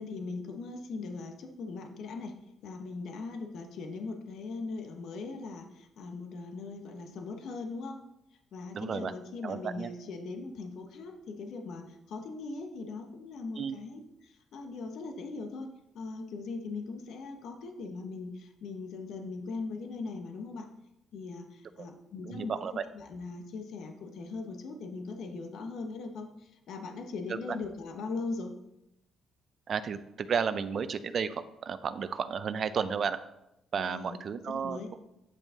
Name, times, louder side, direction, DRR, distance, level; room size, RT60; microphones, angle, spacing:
voice 1, 0.0-2.4 2.6-8.0 8.5-15.7 15.9-20.7 21.1-22.5 22.9-26.3 26.7-28.5 33.8-34.2 34.5-34.9, left 3 dB, 75° left, 5 dB, 0.9 m, -40 dB
voice 2, 8.7-9.1 9.4-9.9 13.6-13.8 21.8-21.9 22.2-22.8 27.3-27.4 29.7-33.2 33.7-34.8, right 6 dB, 55° right, 13 dB, 0.5 m, -33 dB
8.6 x 5.3 x 3.6 m, 0.86 s
cardioid pair, 90°, 0 cm